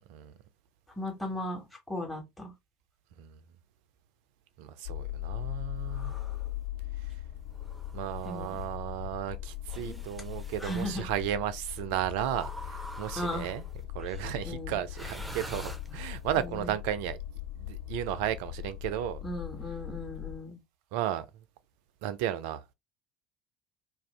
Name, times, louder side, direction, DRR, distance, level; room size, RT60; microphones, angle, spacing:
voice 1, 1.0-2.5 8.2-8.6 9.8-10.0 10.6-11.0 13.2-13.5 14.4-14.8 16.4-16.6 19.2-20.6, left 1 dB, 10° left, 1.2 m, -36 dB
voice 2, 4.6-6.1 7.0-7.2 7.9-13.6 13.9-17.2 17.6-19.2 20.9-21.4 22.0-22.6, right 11 dB, 60° right, 0.3 m, -34 dB
sound 1, 4.8-20.4, left 13 dB, 65° left, 1.4 m, -40 dB
sound 2, 5.9-6.5 7.5-8.7 9.7-10.9 12.3-13.8 14.9-16.3, right 1 dB, 5° right, 0.6 m, -46 dB
2.5 x 2.3 x 3.3 m
figure-of-eight pair, 65°, 0 cm